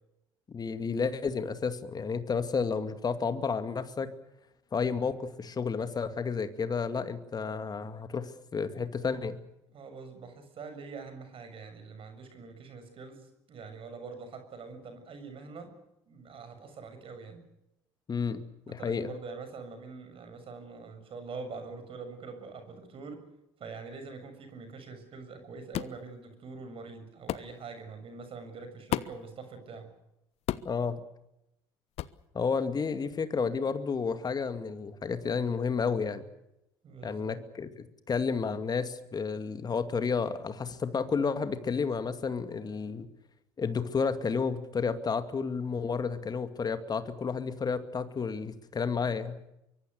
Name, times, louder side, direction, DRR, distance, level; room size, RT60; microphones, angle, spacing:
voice 1, 0.5-4.1 4.7-9.4 18.1-19.1 30.6-31.0 32.3-36.3 37.0-43.1 43.6-49.4, left 5 dB, 30° left, 10 dB, 2.3 m, -31 dB
voice 2, 9.7-15.7 16.1-17.4 18.7-23.3 23.6-29.9 36.8-37.3, right 4 dB, 45° right, 8 dB, 7.0 m, -44 dB
sound 1, 25.7-26.0 27.3-27.5 28.9-29.3 30.5-30.8 32.0-32.2, left 14 dB, 50° left, 1.0 m, -33 dB
24.5 x 24.0 x 6.7 m, 0.85 s
figure-of-eight pair, 55°, 13 cm